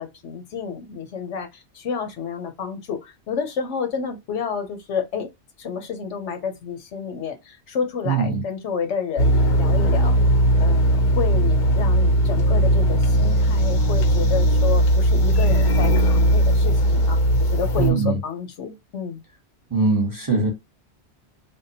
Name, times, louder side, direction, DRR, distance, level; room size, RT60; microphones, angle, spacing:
voice 1, 0.0-5.3 5.6-9.3 9.5-10.2 10.6-17.2 17.5-19.2, left 6 dB, 90° left, 1.1 m, -30 dB
voice 2, 8.0-8.4 17.8-18.2 19.7-20.5, right 4 dB, 20° right, 0.8 m, -21 dB
sound 1, 9.2-17.9, equal, 50° left, 0.7 m, -18 dB
3.5 x 2.2 x 2.7 m
omnidirectional pair, 1.2 m